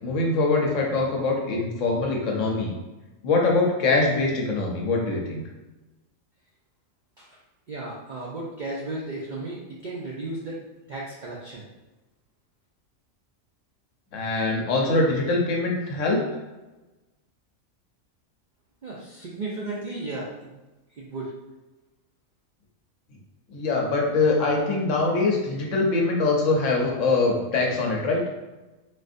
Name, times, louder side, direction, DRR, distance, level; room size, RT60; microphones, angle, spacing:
voice 1, 0.0-2.7 3.2-5.4 14.1-16.2 23.5-28.2, left 3 dB, 70° left, 0 dB, 1.0 m, -23 dB
voice 2, 7.7-10.6 10.9-11.6 18.8-20.5 20.9-21.3, right 2 dB, 60° right, -5 dB, 0.5 m, -34 dB
4.0 x 2.6 x 2.5 m, 1.1 s
omnidirectional pair, 1.4 m